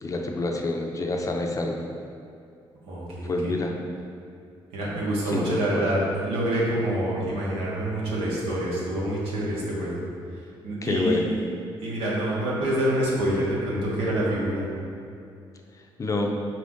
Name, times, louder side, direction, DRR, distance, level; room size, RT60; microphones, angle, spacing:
voice 1, 0.0-1.8 3.2-3.7 5.3-5.8 10.8-11.3 16.0-16.4, left 2 dB, 35° left, 2 dB, 0.4 m, -27 dB
voice 2, 2.9-3.6 4.7-10.0 10.3-11.1 11.8-14.7, right 1 dB, 85° right, -6 dB, 1.0 m, -27 dB
4.5 x 2.5 x 3.5 m, 2.4 s
cardioid pair, 75°, 10 cm